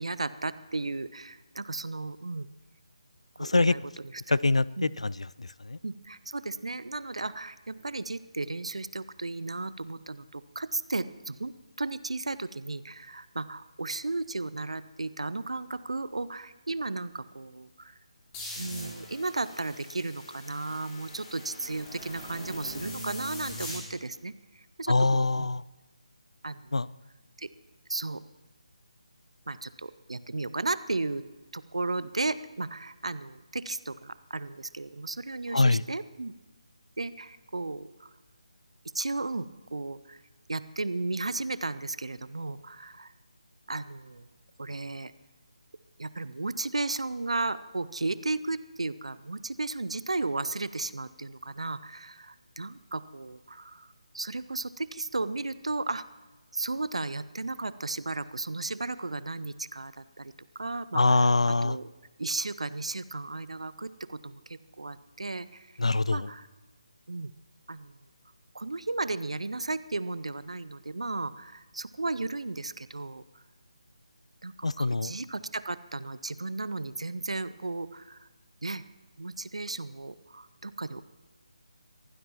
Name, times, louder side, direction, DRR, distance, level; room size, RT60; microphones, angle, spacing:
voice 1, 0.0-2.5 3.4-4.4 4.8-4.9 5.8-11.5 11.8-17.9 18.6-25.5 26.4-26.7 27.4-27.5 27.9-28.2 29.5-31.2 31.5-36.3 37.0-38.1 38.9-40.2 40.5-43.1 43.7-44.3 44.6-45.1 46.0-53.9 54.1-56.0 56.5-61.9 62.2-65.8 66.1-66.5 67.1-67.3 67.7-68.0 68.5-73.4 74.4-78.3 78.6-78.8 79.2-81.0, right 3 dB, 65° right, 16 dB, 0.6 m, -34 dB
voice 2, 3.4-3.7 4.3-5.8 24.9-25.6 26.7-26.9 35.5-35.8 60.9-61.8 65.8-66.3 74.6-75.1, left 3 dB, 70° left, 20 dB, 0.4 m, -24 dB
sound 1, 18.3-23.8, left 1 dB, 10° left, 3.8 m, -42 dB
22.5 x 15.5 x 2.9 m, 1.2 s
figure-of-eight pair, 150°, 4 cm